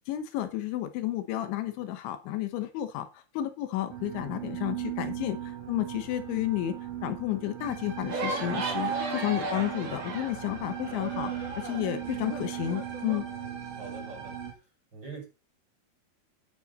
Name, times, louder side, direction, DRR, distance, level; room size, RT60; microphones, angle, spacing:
voice 1, 0.1-6.8 7.0-13.3, left 13 dB, 80° left, 9 dB, 3.4 m, -32 dB
sound 1, 3.9-14.5, right 11 dB, 85° right, 5.2 m, -38 dB
sound 2, 7.6-14.5, right 4 dB, 65° right, 5.3 m, -45 dB
sound 3, 8.1-13.2, right 3 dB, 35° right, 3.2 m, -35 dB
voice 2, 13.2-14.7 14.9-15.2, right 4 dB, 20° right, 0 dB, 6.5 m, -45 dB
13.0 x 9.6 x 4.2 m, 0.30 s
omnidirectional pair, 5.4 m